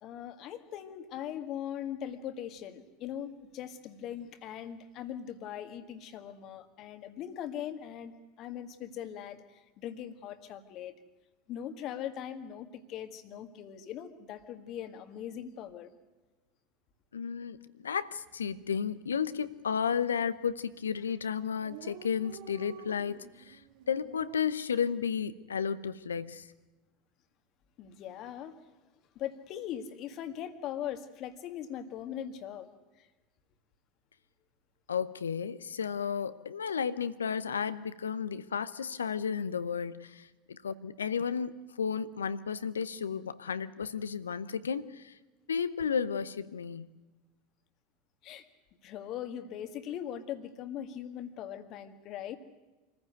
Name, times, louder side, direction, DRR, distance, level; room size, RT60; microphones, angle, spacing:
voice 1, 0.0-11.0 11.5-15.9 27.8-28.5 29.2-32.7 33.0-33.1 48.2-48.5 48.8-52.4, left 10 dB, 45° left, 9 dB, 1.8 m, -40 dB
voice 2, 17.1-17.6 17.8-23.2 23.5-23.6 23.9-26.5 34.9-41.5 41.8-45.1 45.5-46.9, left 7 dB, 75° left, 15 dB, 0.8 m, -33 dB
Dog, 18.2-18.4 18.7-18.8 19.0-19.7 20.4-20.6 20.9-21.0 21.2-21.3 21.4-24.4, right 9 dB, 55° right, 1.7 m, -49 dB
26.0 x 15.0 x 9.3 m, 1.2 s
figure-of-eight pair, 80°, 0 cm